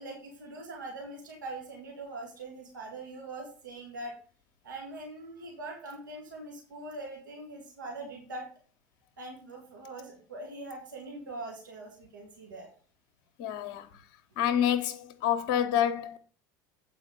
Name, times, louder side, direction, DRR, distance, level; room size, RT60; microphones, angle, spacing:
voice 1, 0.0-4.1 4.6-8.4 9.2-12.7, right 2 dB, 75° right, 2.3 m, -42 dB
voice 2, 13.4-14.0 14.4-16.2, left 10 dB, 50° left, 0.9 m, -28 dB
8.2 x 4.7 x 6.6 m
figure-of-eight pair, 70°, 10 cm